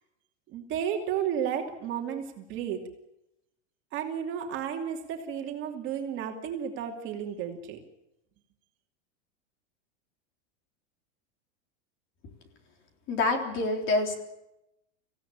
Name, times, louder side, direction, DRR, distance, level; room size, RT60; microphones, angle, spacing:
voice 1, 0.5-2.8 3.9-7.8, right 8 dB, 35° right, 3 dB, 2.7 m, -32 dB
voice 2, 13.1-14.1, left 2 dB, 35° left, 4 dB, 3.6 m, -26 dB
26.0 x 16.5 x 8.8 m, 0.90 s
supercardioid pair, 165°, 36 cm